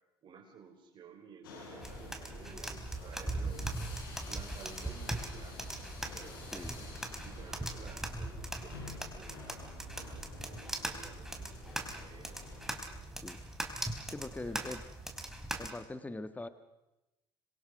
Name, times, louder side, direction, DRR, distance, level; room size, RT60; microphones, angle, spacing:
voice 1, 0.2-3.8 4.3-5.7 6.0-9.6 10.0-12.5 12.9-13.1 14.1-14.7, right 6 dB, 45° right, 0 dB, 4.0 m, -54 dB
sound 1, 1.4-12.9, left 4 dB, 85° left, 6.3 m, -51 dB
sound 2, 1.8-15.7, right 1 dB, 5° right, 4.3 m, -40 dB
voice 2, 14.1-14.8 15.6-16.5, left 2 dB, 15° left, 11 dB, 1.6 m, -42 dB
26.0 x 23.0 x 6.3 m, 0.96 s
hypercardioid pair, 65°, 11 cm